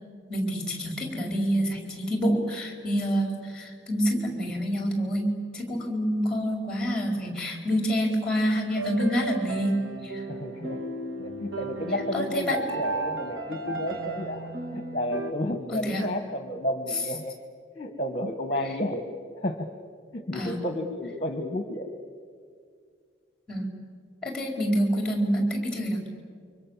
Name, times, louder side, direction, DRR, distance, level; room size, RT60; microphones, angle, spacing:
voice 1, 0.3-10.2 12.1-12.6 15.7-16.1 18.6-18.7 20.3-20.6 23.5-23.7 24.2-26.0, equal, 5° left, 3 dB, 4.4 m, -27 dB
sound 1, 8.7-15.3, right 2 dB, 80° right, 2.1 m, -34 dB
voice 2, 10.3-10.8 11.2-17.3 17.7-19.0 19.4-19.7 20.1-21.9, equal, 30° left, 7 dB, 1.4 m, -31 dB
28.5 x 24.5 x 7.3 m, 2.1 s
head